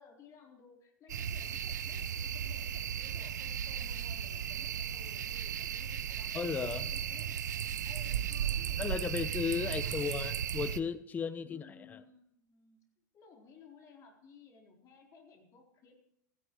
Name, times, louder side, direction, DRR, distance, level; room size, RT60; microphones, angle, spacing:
voice 1, 0.0-9.3 9.6-10.5 11.5-12.8 13.1-16.0, left 5 dB, 30° left, 1 dB, 4.1 m, -58 dB
sound 1, 1.1-10.8, right 9 dB, 65° right, 0.7 m, -36 dB
voice 2, 6.3-6.9 8.8-12.0, left 6 dB, 15° left, 14 dB, 0.7 m, -35 dB
16.5 x 16.0 x 3.2 m, 0.77 s
figure-of-eight pair, 100°, 10 cm